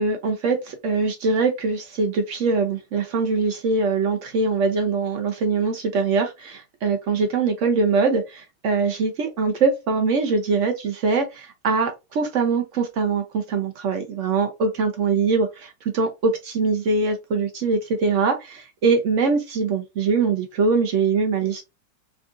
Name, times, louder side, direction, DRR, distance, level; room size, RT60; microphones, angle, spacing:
voice 1, 0.0-21.6, right 4 dB, 65° right, 0.7 m, -23 dB
3.7 x 2.4 x 2.4 m
omnidirectional pair, 1.9 m